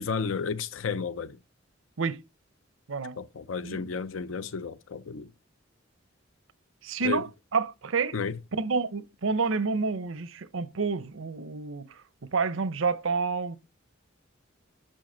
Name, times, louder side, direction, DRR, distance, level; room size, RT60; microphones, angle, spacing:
voice 1, 0.0-1.4 3.2-5.3 7.0-7.3 8.1-8.4, left 5 dB, 80° left, 0.5 m, -32 dB
voice 2, 6.8-7.3 7.5-8.1 8.5-11.9 12.2-13.6, right 4 dB, 85° right, 0.7 m, -29 dB
8.9 x 5.7 x 3.9 m
head